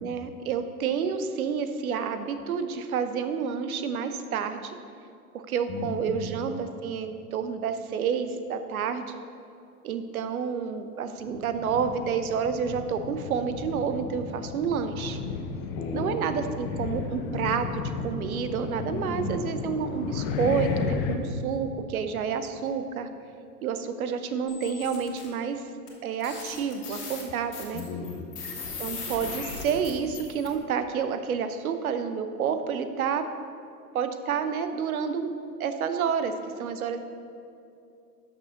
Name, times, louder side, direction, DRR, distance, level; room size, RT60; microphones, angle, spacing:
voice 1, 0.0-4.8 5.5-9.1 9.8-15.2 15.9-23.1 23.6-25.6 26.0-27.8 28.8-33.2 33.9-35.3 35.6-37.0, right 6 dB, 60° right, 9 dB, 0.8 m, -29 dB
voice 2, 5.7-6.3 15.7-16.2 18.9-19.4 27.7-28.3, left 3 dB, 15° left, -1 dB, 0.3 m, -34 dB
sound 1, 11.3-21.2, left 5 dB, 35° left, 0.7 m, -34 dB
sound 2, 24.5-25.3 25.9-26.0 26.2-30.5, left 4 dB, 70° left, 2.0 m, -38 dB
12.0 x 6.4 x 3.7 m, 2.6 s
figure-of-eight pair, 90°, 48 cm